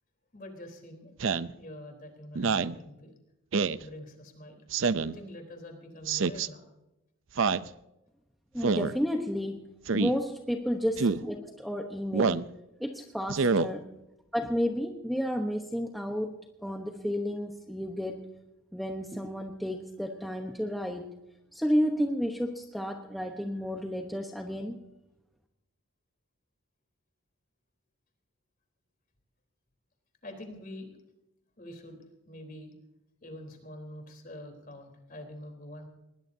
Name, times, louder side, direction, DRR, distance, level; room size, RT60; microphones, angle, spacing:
voice 1, 0.3-1.1 1.5-3.1 3.8-6.6 13.9-14.0 30.2-31.0 31.6-32.7 33.2-35.9, left 1 dB, 40° left, 4 dB, 3.8 m, -45 dB
Speech synthesizer, 1.2-1.5 2.3-2.8 3.5-3.8 4.7-5.2 6.1-6.5 7.4-7.7 8.6-8.9 9.9-10.1 11.0-11.2 12.1-12.5 13.3-13.7, right 4 dB, 60° right, 0.5 m, -26 dB
voice 2, 8.5-12.5 12.8-13.9 14.3-16.4 16.6-18.3 18.7-21.1 21.5-24.8, equal, ahead, 2 dB, 1.0 m, -32 dB
20.5 x 20.5 x 2.8 m, 0.91 s
head